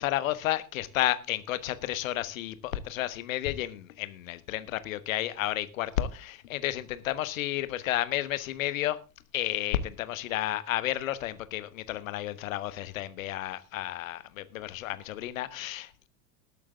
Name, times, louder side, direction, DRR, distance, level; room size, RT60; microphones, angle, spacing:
voice 1, 0.0-9.0 9.3-16.1, left 14 dB, 55° left, 1.3 m, -32 dB
19.5 x 8.5 x 3.5 m
figure-of-eight pair, 85°, 48 cm